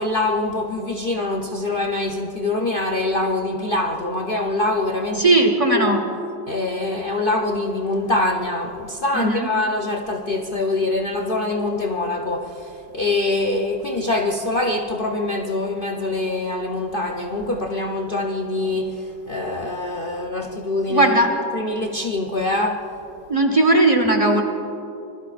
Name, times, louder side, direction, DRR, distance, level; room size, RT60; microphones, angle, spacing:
voice 1, 0.0-5.3 5.7-6.0 6.5-21.2 21.5-22.8, left 2 dB, 90° left, 1 dB, 0.4 m, -24 dB
voice 2, 5.1-6.0 9.1-9.5 20.9-21.3 23.3-24.4, right 2 dB, 20° right, 3 dB, 1.0 m, -17 dB
26.0 x 21.5 x 2.5 m, 2.9 s
omnidirectional pair, 2.1 m